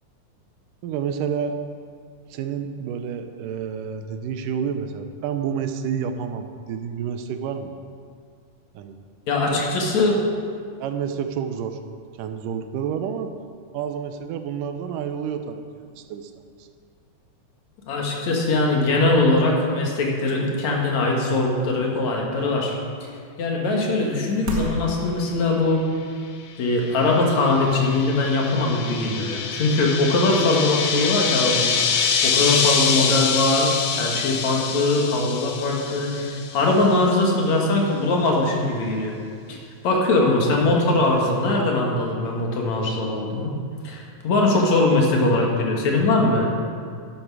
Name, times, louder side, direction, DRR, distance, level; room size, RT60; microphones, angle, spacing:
voice 1, 0.8-1.6 2.3-7.7 8.7-9.0 9.4-9.6 10.8-11.8 12.2-13.3 13.7-15.6 16.0-16.3 16.6-16.7, right 7 dB, 85° right, 8 dB, 2.4 m, -29 dB
voice 2, 9.3-10.3 17.9-22.7 23.0-23.1 23.4-25.9 26.6-31.7 32.2-39.1 39.5-39.6 39.8-43.5 43.8-46.5, left 2 dB, 65° left, -1 dB, 2.8 m, -21 dB
sound 1, 24.0-25.6 27.2-27.3 27.6-28.5 28.9-29.1, equal, 50° right, 1.1 m, -34 dB
sound 2, 26.9-36.7, left 6 dB, 80° left, 1.1 m, -25 dB
11.5 x 11.0 x 4.8 m, 2.2 s
omnidirectional pair, 3.7 m